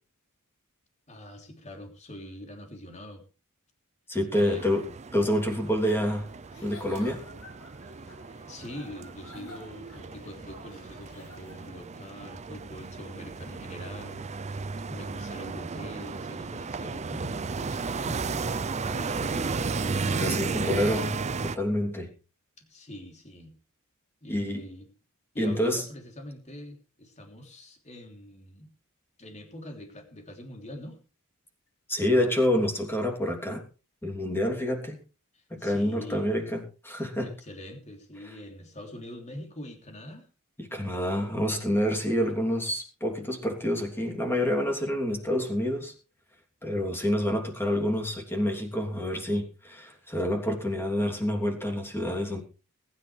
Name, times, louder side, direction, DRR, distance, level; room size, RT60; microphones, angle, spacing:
voice 1, 1.1-3.2 4.3-4.7 7.9-8.0 8.5-19.7 22.6-23.6 24.2-24.9 25.3-28.7 29.2-31.0 35.3-36.3 37.2-40.3, left 1 dB, 30° left, 3 dB, 3.2 m, -44 dB
voice 2, 4.1-4.9 5.1-6.3 6.6-7.2 20.1-21.1 21.4-22.1 24.3-24.6 25.4-25.8 31.9-33.6 34.0-35.0 35.5-37.3 40.6-45.9 46.6-52.4, left 1 dB, 10° left, 2 dB, 3.1 m, -27 dB
sound 1, 4.3-21.6, right 4 dB, 30° right, 0.5 m, -34 dB
Giggle / Chuckle chortle, 6.4-11.9, left 2 dB, 90° left, 6.5 m, -51 dB
21.0 x 10.5 x 3.3 m, 0.34 s
head